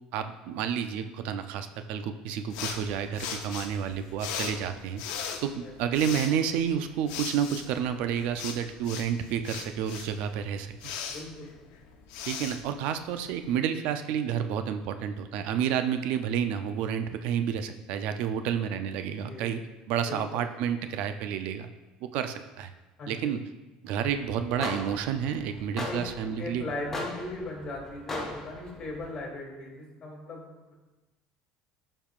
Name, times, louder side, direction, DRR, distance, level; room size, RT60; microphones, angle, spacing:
voice 1, 0.1-5.0 5.4-10.7 12.3-19.6 19.9-21.7 22.0-22.7 23.1-23.4 23.8-26.7, right 8 dB, 70° right, 9 dB, 0.4 m, -30 dB
sound 1, 2.5-13.5, left 7 dB, 85° left, 0.8 m, -39 dB
voice 2, 11.1-11.5 19.2-19.5 20.1-20.4 23.0-23.3 25.9-26.0 26.4-30.4 30.7-30.8, left 2 dB, 35° left, -1 dB, 2.3 m, -38 dB
sound 2, 23.9-29.2, left 2 dB, 15° left, 1.1 m, -39 dB
11.5 x 5.4 x 2.4 m, 1.1 s
cardioid pair, 140°, 2 cm